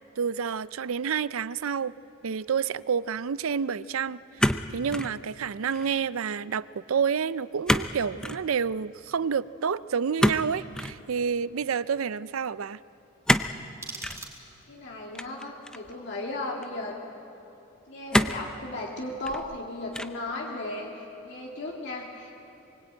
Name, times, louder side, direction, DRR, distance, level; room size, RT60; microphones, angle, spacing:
voice 1, 0.2-1.9 2.2-12.8, right 6 dB, 90° right, 17 dB, 0.5 m, -29 dB
sound 1, 4.4-5.1 5.5-5.9 7.7-7.9 8.2-8.4 10.2-11.0 13.2-13.6 14.0-14.2 15.1-15.9 16.6-16.7 18.1-18.5 19.1-19.6 19.9-20.3, left 1 dB, 5° left, 0.5 m, -26 dB
sound 2, 13.4-14.8, right 3 dB, 15° right, 4.2 m, -43 dB
voice 2, 14.7-17.0 17.9-22.4, left 2 dB, 60° left, -2 dB, 2.5 m, -36 dB
23.0 x 22.5 x 8.8 m, 2.9 s
head